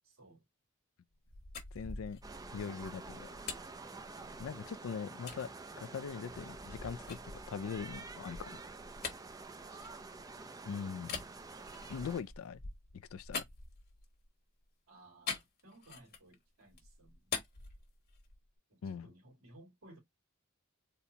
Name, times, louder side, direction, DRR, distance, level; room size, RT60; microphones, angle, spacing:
voice 1, 0.0-0.4 4.2-4.6 9.6-10.0 14.9-17.3 18.7-20.0, right 2 dB, 85° right, 2.2 m, -60 dB
sound 1, 1.1-4.6 5.3-5.4 6.0-10.4 11.0-14.2 15.3-16.4 16.7-18.5, left 5 dB, 45° left, 1.1 m, -45 dB
voice 2, 1.7-2.2 2.5-3.3 4.4-5.5 5.8-8.6 10.7-11.2 11.9-12.6 13.1-13.4 18.8-19.1, left 6 dB, 75° left, 0.4 m, -41 dB
sound 2, 2.2-12.2, right 3 dB, 15° right, 0.4 m, -48 dB
4.0 x 2.1 x 2.8 m
head